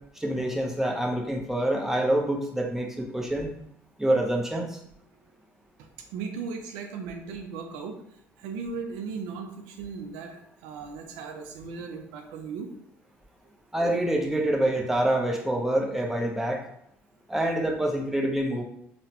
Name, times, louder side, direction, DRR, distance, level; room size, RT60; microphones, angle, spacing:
voice 1, 0.2-3.5 4.0-4.8 13.7-16.6 17.3-18.6, right 1 dB, 5° right, 1 dB, 0.7 m, -26 dB
voice 2, 6.1-8.0 8.4-12.7, right 5 dB, 80° right, 4 dB, 0.4 m, -37 dB
3.8 x 2.1 x 2.9 m, 0.72 s
hypercardioid pair, 70°, 7 cm